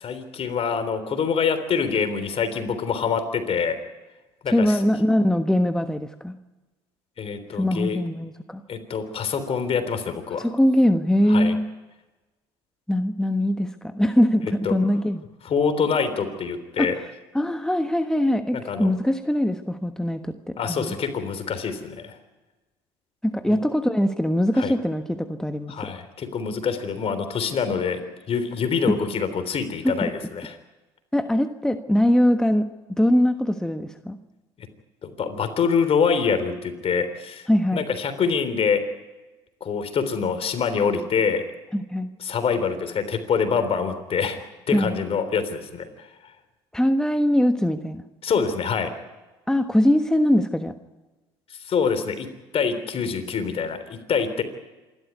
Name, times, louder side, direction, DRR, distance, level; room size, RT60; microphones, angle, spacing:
voice 1, 0.0-3.8 4.4-4.8 7.2-8.0 8.7-10.5 11.3-11.5 14.7-14.8 15.5-17.0 18.5-18.9 20.6-22.2 23.5-23.6 24.6-24.7 25.7-28.0 28.3-30.6 35.0-38.8 39.6-41.4 42.2-44.4 44.7-46.1 48.2-48.9 51.6-54.4, left 6 dB, 50° left, 10 dB, 3.5 m, -25 dB
voice 2, 4.5-6.4 7.5-8.6 10.4-11.7 12.9-15.2 16.8-17.1 17.3-21.0 23.2-25.9 29.8-30.1 31.1-32.7 33.0-34.2 37.5-37.9 41.7-42.1 44.7-44.9 46.7-48.0 49.5-50.8, left 1 dB, 5° left, 8 dB, 1.3 m, -22 dB
27.0 x 12.5 x 9.5 m, 1.2 s
hypercardioid pair, 65°, 13 cm